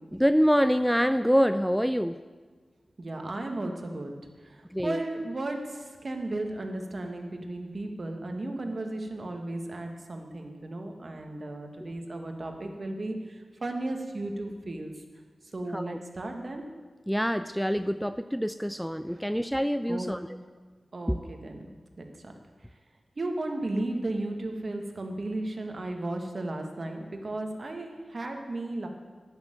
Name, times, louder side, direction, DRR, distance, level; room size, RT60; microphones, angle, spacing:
voice 1, 0.1-2.2 4.7-5.0 11.8-11.9 15.7-16.0 17.1-20.2 21.1-21.2, equal, ahead, 11 dB, 0.3 m, -26 dB
voice 2, 3.0-4.1 4.4-4.6 4.8-13.2 13.6-14.9 15.5-16.6 19.1-19.3 19.9-20.2 20.9-21.7 22.0-22.3 23.2-28.9, right 2 dB, 50° right, 3 dB, 1.6 m, -34 dB
10.5 x 6.7 x 9.1 m, 1.4 s
wide cardioid pair, 75°, 0 cm